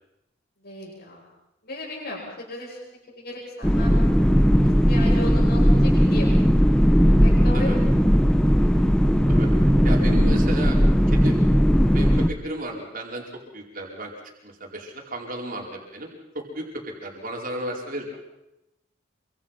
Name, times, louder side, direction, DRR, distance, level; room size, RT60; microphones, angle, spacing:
voice 1, 0.6-1.2 1.6-4.0 4.6-6.3 7.2-7.7, left 1 dB, 60° left, -7 dB, 7.6 m, -36 dB
sound 1, 3.6-12.3, equal, 5° left, 1.1 m, -18 dB
voice 2, 9.8-10.8 11.1-11.3 11.8-13.2 13.5-14.1 14.4-16.1 16.3-18.2, right 1 dB, 50° right, 0 dB, 5.1 m, -33 dB
27.5 x 25.0 x 5.9 m, 0.89 s
head